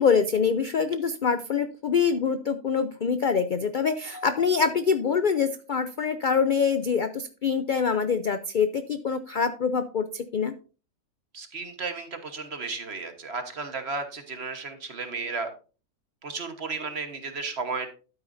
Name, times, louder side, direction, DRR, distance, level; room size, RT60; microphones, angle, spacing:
voice 1, 0.0-10.5, left 6 dB, 75° left, 10 dB, 0.4 m, -25 dB
voice 2, 11.3-15.5 16.2-17.9, right 4 dB, 45° right, 7 dB, 1.5 m, -34 dB
12.5 x 8.8 x 2.6 m, 0.35 s
omnidirectional pair, 1.6 m